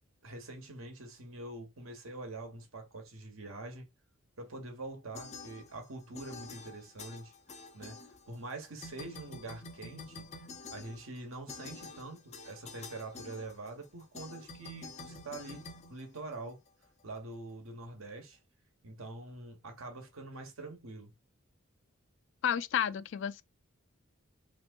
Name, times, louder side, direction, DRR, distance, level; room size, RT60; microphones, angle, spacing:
voice 1, 0.2-3.9 4.4-7.3 7.7-10.3 10.7-15.6 15.9-16.6 17.0-18.4 18.8-21.1, right 2 dB, 90° right, 1.2 m, -45 dB
sound 1, 5.1-5.9 6.1-8.5 8.8-16.7, left 3 dB, 35° left, 0.7 m, -48 dB
voice 2, 22.4-23.4, left 9 dB, 60° left, 0.3 m, -31 dB
3.4 x 2.9 x 2.4 m
head